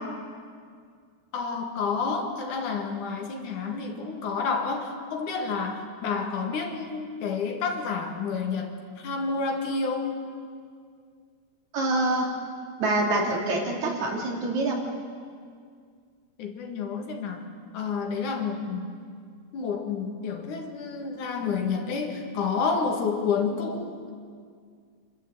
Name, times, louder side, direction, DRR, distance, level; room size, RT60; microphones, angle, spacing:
voice 1, 1.3-8.7 9.0-10.2 16.4-17.4 17.7-18.9 19.5-24.1, left 5 dB, 85° left, 3 dB, 3.5 m, -29 dB
voice 2, 11.7-12.3 12.8-14.8, right 2 dB, 70° right, 0 dB, 4.1 m, -25 dB
28.5 x 13.0 x 8.0 m, 2.1 s
omnidirectional pair, 3.4 m